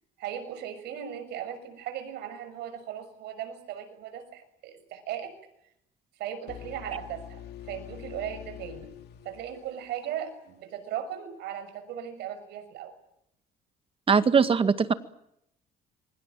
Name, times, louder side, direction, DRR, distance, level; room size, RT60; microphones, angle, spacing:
voice 1, 0.2-5.4 6.2-8.9 9.2-12.9, right 10 dB, 80° right, 9 dB, 6.7 m, -37 dB
sound 1, 6.5-10.3, left 12 dB, 75° left, 2.4 m, -45 dB
voice 2, 14.1-14.9, right 5 dB, 35° right, 11 dB, 2.0 m, -21 dB
27.0 x 24.5 x 7.6 m, 0.78 s
cardioid pair, 110°, 17 cm